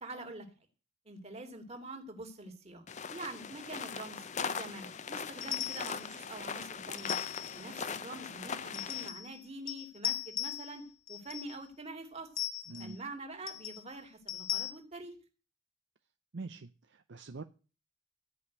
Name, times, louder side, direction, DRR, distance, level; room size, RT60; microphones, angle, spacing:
voice 1, 0.0-0.5 1.1-12.3 12.8-15.1, right 2 dB, 30° right, 2.5 m, -45 dB
sound 1, 2.9-9.1, left 6 dB, 35° left, 0.6 m, -40 dB
sound 2, 5.4-6.0 7.0-7.6 8.7-9.4 9.7-10.8 11.1-11.6 12.4-13.0 13.5-13.8 14.3-14.7, left 13 dB, 85° left, 1.1 m, -38 dB
voice 2, 16.3-17.4, right 3 dB, 60° right, 0.6 m, -44 dB
14.5 x 5.4 x 9.5 m
head